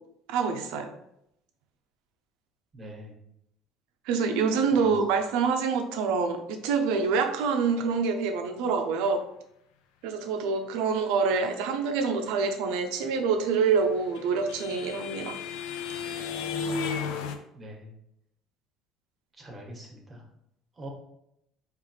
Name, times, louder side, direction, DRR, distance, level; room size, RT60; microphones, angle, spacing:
voice 1, 0.3-0.9 4.1-9.2 10.0-15.4, right 5 dB, 80° right, 6 dB, 0.7 m, -26 dB
voice 2, 2.7-3.1 4.7-4.9 17.5-17.9 19.4-20.2 20.8-20.9, right 1 dB, 25° right, 1 dB, 1.5 m, -43 dB
sound 1, 13.5-17.4, left 5 dB, 80° left, 0.5 m, -34 dB
4.9 x 3.2 x 3.2 m, 0.78 s
supercardioid pair, 100°, 0 cm